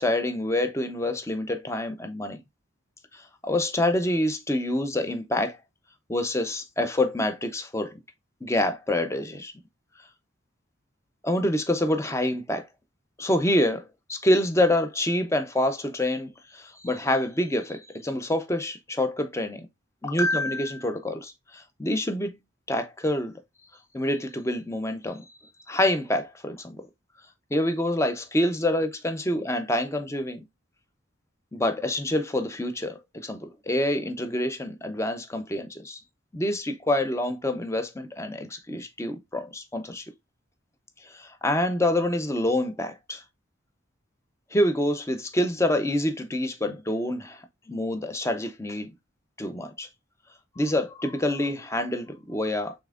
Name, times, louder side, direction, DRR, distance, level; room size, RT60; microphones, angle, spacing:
voice 1, 0.0-2.4 3.4-5.6 6.1-7.9 8.4-9.5 11.2-12.7 13.2-13.8 14.1-19.7 20.0-22.3 22.7-23.3 23.9-25.3 25.7-26.8 27.5-30.4 31.5-36.0 36.3-40.0 41.1-43.2 44.5-47.4 47.7-48.9 49.4-49.9 50.6-52.7, left 1 dB, 15° left, 0.5 m, -26 dB
5.4 x 3.5 x 2.4 m
head